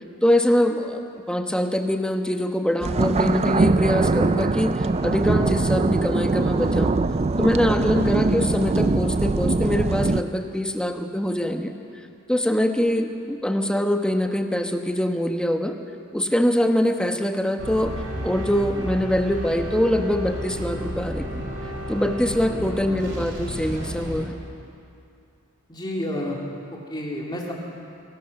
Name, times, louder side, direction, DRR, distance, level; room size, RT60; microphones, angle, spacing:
voice 1, 0.2-7.0 7.4-11.7 12.3-15.7 16.1-17.9 18.2-21.4 21.9-24.3, left 1 dB, 5° left, 5 dB, 1.1 m, -23 dB
sound 1, 2.8-10.2, right 3 dB, 30° right, 0.4 m, -22 dB
sound 2, 17.6-24.3, equal, 70° right, 4.3 m, -32 dB
voice 2, 22.5-23.1 25.7-26.4 26.7-27.5, left 1 dB, 20° left, -2 dB, 3.1 m, -31 dB
22.0 x 18.0 x 6.7 m, 2.5 s
head